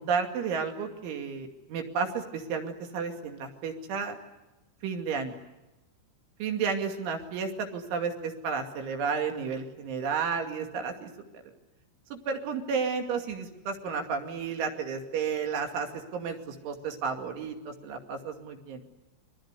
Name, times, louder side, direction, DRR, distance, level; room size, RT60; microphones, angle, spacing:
voice 1, 0.0-4.2 4.8-5.4 6.4-11.4 12.1-18.8, right 5 dB, 70° right, 4 dB, 4.8 m, -32 dB
29.5 x 23.0 x 8.2 m, 0.99 s
omnidirectional pair, 5.7 m